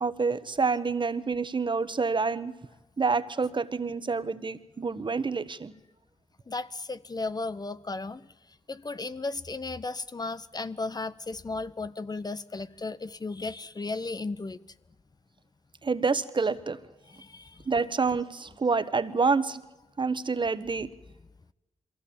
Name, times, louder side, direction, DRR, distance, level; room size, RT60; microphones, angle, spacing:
voice 1, 0.0-2.5 3.0-5.7 15.8-16.8 17.7-19.6 20.0-20.9, right 4 dB, 40° right, 13 dB, 1.3 m, -27 dB
voice 2, 6.5-8.2 8.7-14.6 17.1-17.6, left 3 dB, 35° left, 15 dB, 0.9 m, -35 dB
22.5 x 16.0 x 8.7 m, 1.0 s
supercardioid pair, 45°, 12 cm